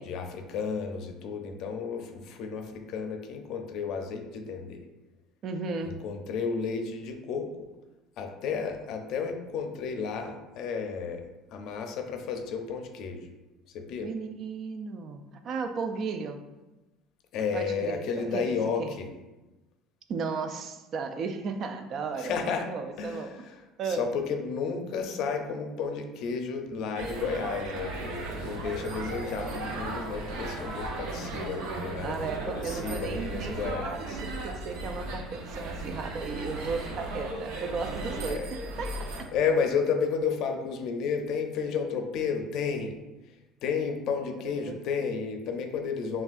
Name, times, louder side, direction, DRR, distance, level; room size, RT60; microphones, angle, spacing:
voice 1, 0.0-4.8 5.8-7.5 8.2-11.2 11.5-13.3 13.7-14.1 17.3-19.1 22.2-22.7 23.0-23.6 23.9-34.2 38.2-38.6 39.3-43.0 43.6-46.2, left 5 dB, 55° left, 5 dB, 0.5 m, -32 dB
voice 2, 5.4-6.0 14.0-16.4 17.5-18.9 20.1-22.4 22.7-23.3 23.8-24.1 32.0-39.3 44.4-44.8, right 4 dB, 40° right, 7 dB, 0.3 m, -35 dB
sound 1, 26.9-39.2, right 2 dB, 80° right, 0.8 m, -36 dB
5.8 x 2.4 x 2.5 m, 1.1 s
cardioid pair, 140°, 0 cm